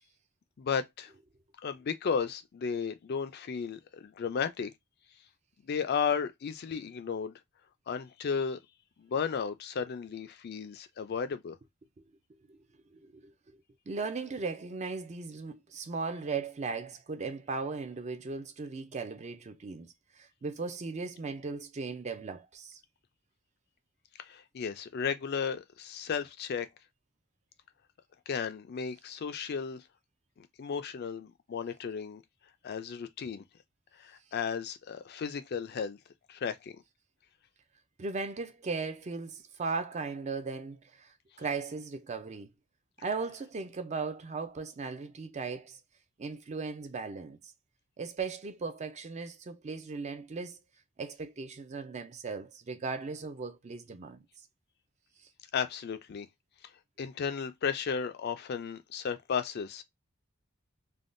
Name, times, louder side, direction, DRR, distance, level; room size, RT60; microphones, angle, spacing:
voice 1, 0.6-1.1 1.6-4.7 5.6-7.4 7.9-8.6 9.0-11.6 24.2-26.7 28.3-29.8 30.4-32.2 32.6-33.4 34.0-36.0 36.3-36.8 55.5-56.3 57.0-59.8, left 6 dB, 50° left, 0.4 m, -34 dB
voice 2, 12.9-13.6 13.9-22.8 38.0-42.5 43.0-45.8 46.2-47.5 48.0-50.6 51.0-54.2, right 4 dB, 35° right, 0.4 m, -37 dB
3.4 x 2.2 x 2.5 m
head